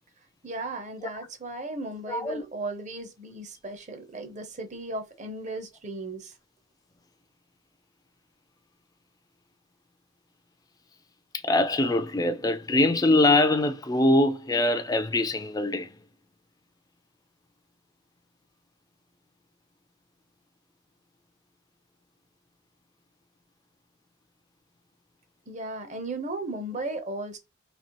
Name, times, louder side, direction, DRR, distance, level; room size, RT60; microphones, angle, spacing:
voice 1, 0.4-6.3 25.5-27.4, right 2 dB, 35° right, 0.7 m, -36 dB
voice 2, 2.1-2.4 11.4-15.9, left 2 dB, 15° left, 0.3 m, -23 dB
4.2 x 2.8 x 2.9 m
head